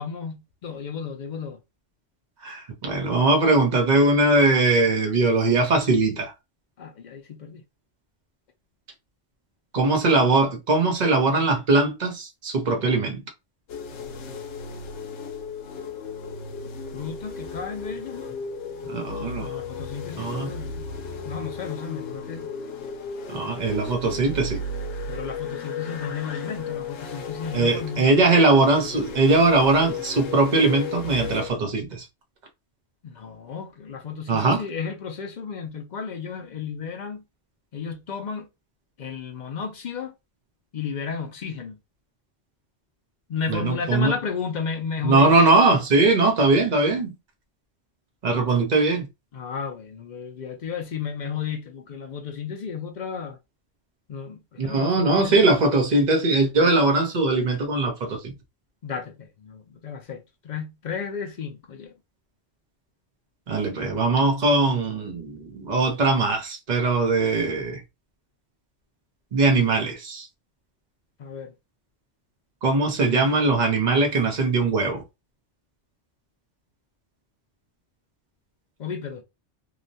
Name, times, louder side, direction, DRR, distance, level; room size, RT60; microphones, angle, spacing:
voice 1, 0.0-1.6 6.8-7.6 16.9-18.3 18.9-20.9 21.2-22.5 25.1-28.1 33.0-37.2 37.7-38.5 39.0-40.1 40.7-41.8 43.3-45.5 49.3-53.4 54.1-55.5 58.8-61.9 71.2-71.5 78.8-79.2, left 6 dB, 60° left, 0.5 m, -33 dB
voice 2, 2.4-6.3 9.7-13.2 18.9-19.5 20.2-20.5 23.3-24.6 27.5-32.0 34.3-34.6 43.5-44.1 45.0-47.1 48.2-49.1 54.6-58.3 63.5-67.8 69.3-70.3 72.6-75.0, right 3 dB, 40° right, 0.8 m, -21 dB
sound 1, 13.7-31.5, left 4 dB, 80° left, 0.9 m, -35 dB
2.9 x 2.1 x 2.6 m
omnidirectional pair, 1.2 m